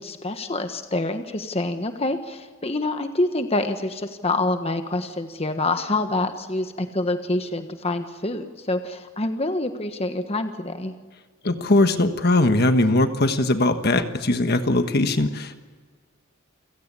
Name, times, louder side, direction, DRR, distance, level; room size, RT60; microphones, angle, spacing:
voice 1, 0.0-10.9, left 2 dB, 30° left, 7 dB, 1.4 m, -26 dB
voice 2, 11.4-15.6, left 2 dB, 50° left, 8 dB, 1.4 m, -20 dB
29.0 x 17.0 x 8.5 m, 1.5 s
head